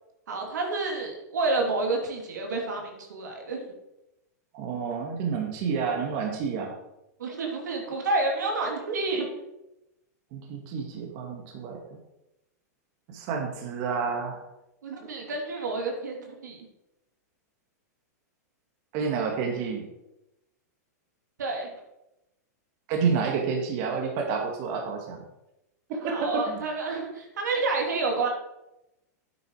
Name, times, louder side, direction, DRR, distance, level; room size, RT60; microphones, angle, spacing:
voice 1, 0.3-3.7 7.2-9.3 14.8-16.7 21.4-21.7 26.0-28.3, right 3 dB, 85° right, 1 dB, 3.1 m, -29 dB
voice 2, 4.5-6.7 10.3-12.0 13.1-14.4 18.9-19.8 22.9-25.2 26.0-26.6, right 5 dB, 50° right, 1 dB, 2.1 m, -29 dB
9.3 x 9.2 x 4.9 m, 0.90 s
hypercardioid pair, 130°, 9 cm